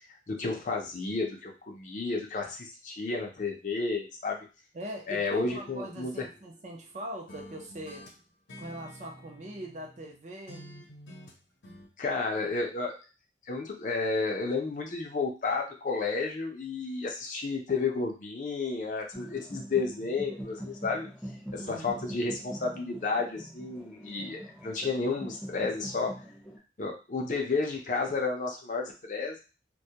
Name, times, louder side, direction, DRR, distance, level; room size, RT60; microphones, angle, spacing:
voice 1, 0.3-4.5 5.1-6.3 12.0-12.9 13.5-21.1 21.5-26.1 26.8-29.4, left 4 dB, 45° left, 1 dB, 0.5 m, -31 dB
voice 2, 4.7-8.1 8.6-10.8 21.5-22.0, right 1 dB, 40° right, 1 dB, 0.5 m, -42 dB
sound 1, 5.5-7.0 7.3-10.1 10.5-11.9, equal, 85° left, 0.7 m, -49 dB
sound 2, 19.1-26.6, equal, ahead, 0.6 m, -43 dB
2.2 x 2.1 x 2.7 m, 0.32 s
head